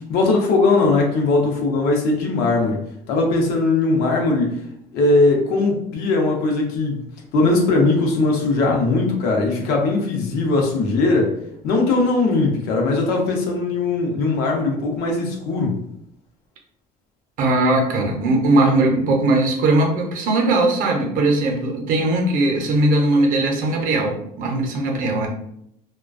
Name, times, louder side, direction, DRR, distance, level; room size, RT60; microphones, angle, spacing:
voice 1, 0.1-2.8 3.1-4.6 4.9-7.0 7.3-11.3 11.6-15.8, left 3 dB, 85° left, 1 dB, 0.6 m, -19 dB
voice 2, 17.4-25.3, right 2 dB, 60° right, 2 dB, 0.6 m, -19 dB
2.3 x 2.2 x 2.4 m, 0.75 s
cardioid pair, 145°, 16 cm